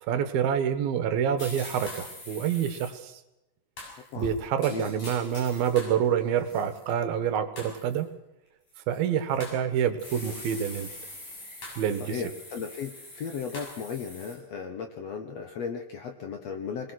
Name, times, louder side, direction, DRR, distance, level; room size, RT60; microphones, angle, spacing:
voice 1, 0.1-3.2 4.2-8.1 8.9-10.9 11.8-12.2, right 8 dB, 70° right, 10 dB, 3.0 m, -27 dB
sound 1, 1.4-2.9 3.8-6.0 6.4-6.9 7.6-8.0 8.9-9.6 10.0-14.3, left 1 dB, 50° left, 8.6 m, -43 dB
voice 2, 12.0-16.9, left 6 dB, 70° left, 6 dB, 1.6 m, -36 dB
21.5 x 20.5 x 6.3 m, 0.90 s
omnidirectional pair, 4.7 m